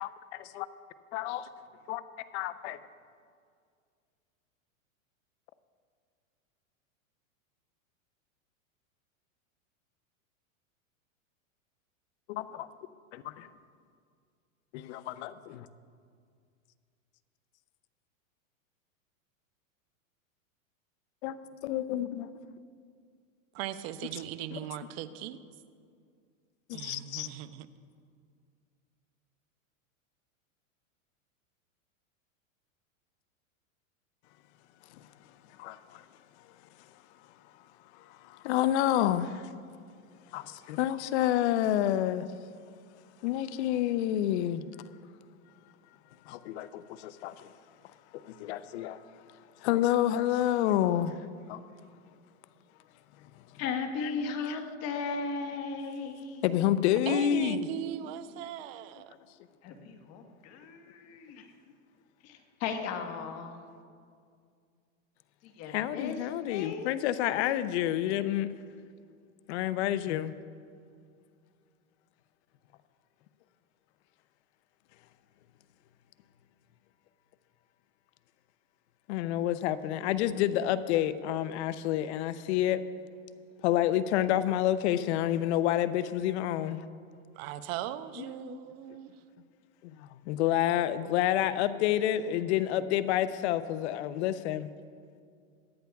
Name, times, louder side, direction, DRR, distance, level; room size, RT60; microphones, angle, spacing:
voice 1, 2.3-2.8 12.3-12.7 13.1-13.5 14.7-15.7 21.2-21.4 21.6-22.3 24.5-24.6 26.7-27.3 35.6-36.0 37.9-39.5 40.3-42.3 43.2-44.6 46.3-47.5 48.1-49.0 49.6-51.2 51.5-51.6 54.0-54.1 54.5-54.6 56.4-57.7 65.7-68.5 69.5-70.3 79.1-82.8 83.6-86.9 88.4-88.6 89.8-94.7, left 12 dB, 55° left, 14 dB, 0.7 m, -29 dB
voice 2, 23.5-25.4 26.7-27.7 57.1-59.1 87.3-89.2, right 12 dB, 50° right, 13 dB, 0.7 m, -39 dB
voice 3, 53.6-56.4 59.6-61.5 62.2-63.6 65.4-66.9, left 5 dB, 40° left, 5 dB, 1.4 m, -36 dB
22.5 x 10.5 x 2.3 m, 2.2 s
supercardioid pair, 130°, 40 cm